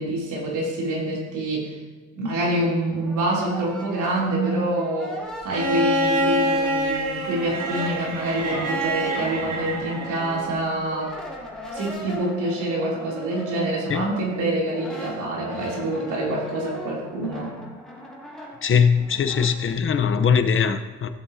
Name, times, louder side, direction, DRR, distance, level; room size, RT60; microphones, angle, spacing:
voice 1, 0.0-1.7 2.1-5.2 5.4-11.1 11.7-17.5, right 1 dB, 85° right, -3 dB, 3.2 m, -26 dB
Brass instrument, 2.7-7.1 7.4-19.5, left 1 dB, ahead, 2.7 m, -39 dB
Bowed string instrument, 5.5-10.5 12.0-12.1, right 1 dB, 60° right, 1.9 m, -26 dB
voice 2, 18.6-21.1, left 6 dB, 45° left, 8 dB, 0.9 m, -21 dB
15.0 x 7.7 x 2.8 m, 1.4 s
cardioid pair, 90°, 30 cm